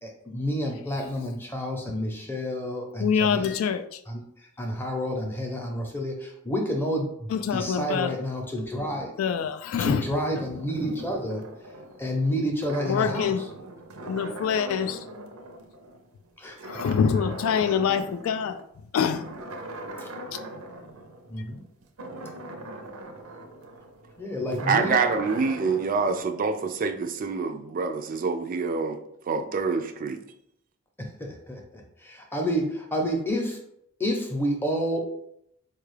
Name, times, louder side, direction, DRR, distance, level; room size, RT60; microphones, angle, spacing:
voice 1, 0.0-3.5 4.1-4.2 4.6-9.1 9.8-11.4 12.0-13.5 16.4-16.8 17.5-17.8 20.0-20.1 21.3-21.6 24.2-24.9 31.0-31.6 32.0-33.6 34.0-35.0, equal, 10° left, 1 dB, 0.6 m, -29 dB
voice 2, 3.0-4.0 7.3-8.1 9.2-10.1 12.9-13.4 14.1-15.0 16.6-18.6 18.9-19.2, left 7 dB, 75° left, 10 dB, 0.3 m, -25 dB
sound 1, 9.9-16.3 16.6-18.6 19.1-26.2, right 1 dB, 90° right, 0.6 m, -40 dB
voice 3, 24.7-29.0 29.3-30.2, right 5 dB, 40° right, 7 dB, 0.3 m, -26 dB
4.6 x 2.3 x 3.2 m, 0.73 s
head